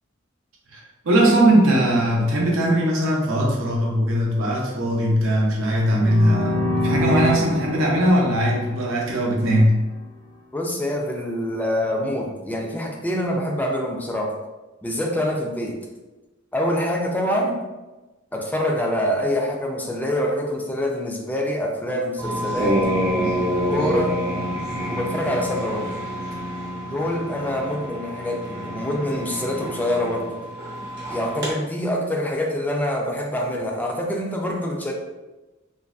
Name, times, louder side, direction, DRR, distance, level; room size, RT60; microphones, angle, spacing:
voice 1, 0.7-9.8, right 1 dB, 85° right, -3 dB, 0.6 m, -20 dB
sound 1, 5.9-9.6, left 1 dB, 70° left, 0.7 m, -26 dB
voice 2, 10.5-14.3 14.8-15.8 16.5-17.6 18.3-22.8 23.7-24.2 24.9-25.9 26.9-30.4 31.1-34.9, left 1 dB, 10° left, 0 dB, 0.3 m, -25 dB
sound 2, 22.2-31.5, equal, 55° right, 0.8 m, -27 dB
2.5 x 2.2 x 2.3 m, 1.1 s
head